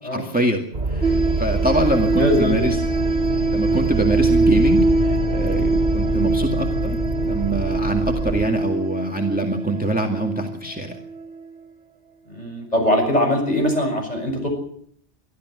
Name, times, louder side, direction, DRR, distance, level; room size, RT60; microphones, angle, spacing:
voice 1, 0.0-2.8 3.5-10.9, right 1 dB, 5° right, 2 dB, 2.0 m, -24 dB
sound 1, 0.7-8.5, right 3 dB, 40° right, 2.4 m, -25 dB
sound 2, 1.0-11.5, right 2 dB, 75° right, 2.0 m, -23 dB
voice 2, 1.9-2.7 12.3-14.5, left 1 dB, 35° left, 3 dB, 6.7 m, -22 dB
24.0 x 14.0 x 8.0 m, 0.64 s
omnidirectional pair, 1.2 m